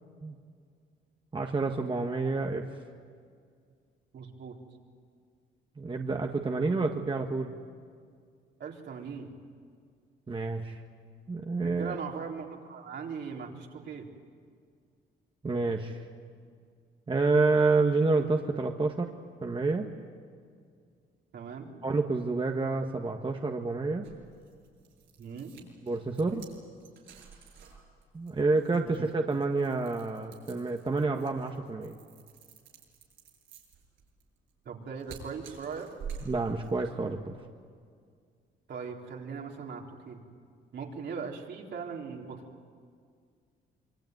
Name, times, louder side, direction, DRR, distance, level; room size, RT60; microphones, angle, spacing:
voice 1, 1.3-2.6 5.8-7.5 10.3-10.8 11.3-12.0 15.4-16.0 17.1-19.1 19.4-19.9 21.8-24.1 25.8-26.5 28.1-31.9 36.3-37.4, right 3 dB, 25° right, 3 dB, 1.7 m, -28 dB
voice 2, 4.1-4.6 8.6-9.3 11.6-14.1 21.3-21.7 25.2-25.5 28.8-29.0 34.6-35.9 38.7-40.2 40.7-42.4, right 6 dB, 60° right, 0 dB, 4.2 m, -39 dB
sound 1, 24.0-37.0, right 6 dB, 80° right, 7.9 m, -49 dB
25.5 x 23.5 x 9.5 m, 2.1 s
cardioid pair, 90°, 20 cm